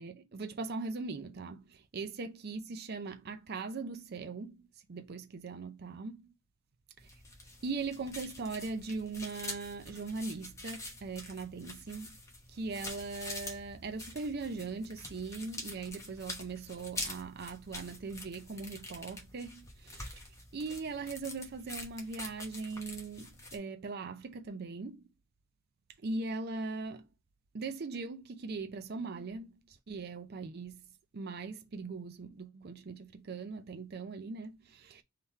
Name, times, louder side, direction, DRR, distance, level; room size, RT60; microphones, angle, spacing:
voice 1, 0.0-4.6 4.9-6.3 7.6-12.2 12.5-20.2 20.5-25.0 26.0-27.1 27.5-30.8 31.1-35.0, right 3 dB, 50° right, 0.5 m, -40 dB
sound 1, 7.0-23.6, left 2 dB, 15° left, 0.9 m, -46 dB
3.6 x 2.9 x 4.4 m
head